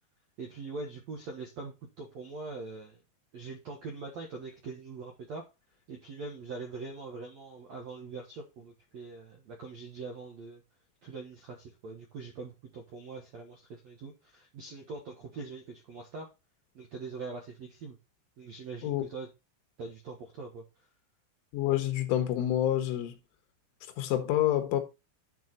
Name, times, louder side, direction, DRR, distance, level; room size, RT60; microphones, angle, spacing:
voice 1, 0.4-3.0 3.3-5.4 5.9-10.6 11.0-16.3 16.7-18.0 18.4-19.3 19.8-20.6, right 4 dB, 90° right, 1.5 m, -42 dB
voice 2, 21.5-23.1 24.0-24.8, left 12 dB, 85° left, 3.7 m, -27 dB
10.5 x 4.9 x 4.1 m
omnidirectional pair, 5.5 m